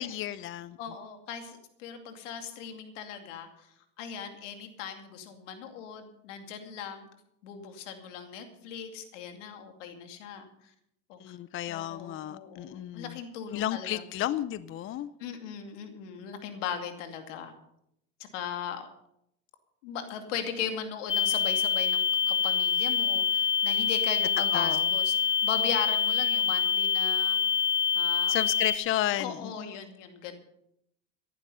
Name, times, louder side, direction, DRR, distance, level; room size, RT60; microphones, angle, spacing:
voice 1, 0.0-0.8 11.2-13.2 13.5-15.1 24.4-24.9 28.3-29.7, left 13 dB, 35° left, 16 dB, 0.6 m, -32 dB
voice 2, 0.8-3.5 4.0-7.1 7.4-10.5 11.1-11.2 11.7-14.0 15.2-17.5 18.3-18.9 19.8-27.4 27.9-28.4 29.2-30.3, left 7 dB, 80° left, 6 dB, 2.5 m, -38 dB
sound 1, 21.1-28.8, left 7 dB, 15° left, 1.2 m, -26 dB
15.5 x 11.0 x 5.5 m, 0.77 s
supercardioid pair, 105°, 36 cm